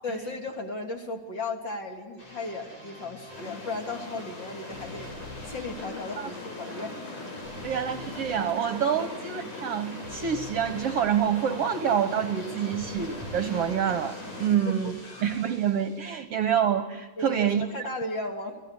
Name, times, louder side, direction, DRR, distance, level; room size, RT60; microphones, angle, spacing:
voice 1, 0.0-5.1 5.5-7.1 9.0-9.1 17.2-18.6, left 2 dB, 35° left, 2 dB, 3.5 m, -35 dB
sound 1, 2.2-16.1, left 1 dB, 50° left, 7.9 m, -45 dB
sound 2, 3.3-14.5, left 2 dB, 90° left, 8.9 m, -41 dB
voice 2, 7.6-14.9 15.2-17.6, right 8 dB, 60° right, 9 dB, 1.9 m, -27 dB
29.5 x 18.0 x 9.7 m, 1.2 s
omnidirectional pair, 3.5 m